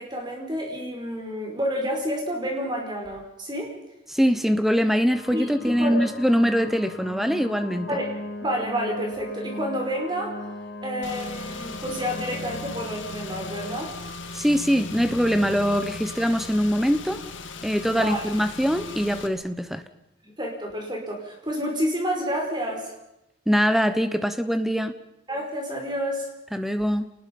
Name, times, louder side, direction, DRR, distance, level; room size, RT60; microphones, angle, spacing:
voice 1, 0.0-3.7 5.3-5.5 5.8-6.0 7.9-8.1 8.4-10.4 10.8-14.0 17.9-18.3 20.2-22.9 25.3-26.3, equal, 20° right, 1 dB, 5.1 m, -29 dB
voice 2, 4.1-7.9 14.3-17.2 17.6-19.8 23.5-24.9 26.5-27.1, equal, ahead, 10 dB, 1.1 m, -23 dB
sound 1, 5.1-13.8, left 1 dB, 55° left, 4.5 m, -38 dB
Car / Engine, 11.0-19.3, left 3 dB, 70° left, 1.9 m, -38 dB
28.5 x 19.5 x 5.4 m, 0.88 s
head